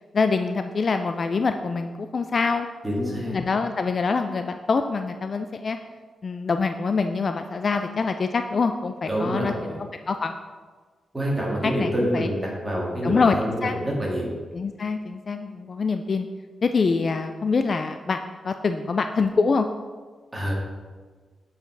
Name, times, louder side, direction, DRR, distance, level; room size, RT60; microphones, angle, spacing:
voice 1, 0.1-5.8 6.2-9.5 10.1-10.4 11.6-12.3 13.0-13.4 13.6-13.7 14.5-16.3 16.6-19.7, left 4 dB, 40° left, 7 dB, 0.3 m, -25 dB
voice 2, 2.8-3.4 9.1-9.8 11.1-14.3 20.3-20.5, equal, 10° right, -4 dB, 2.0 m, -27 dB
7.7 x 4.8 x 4.6 m, 1.4 s
wide cardioid pair, 125°, 0 cm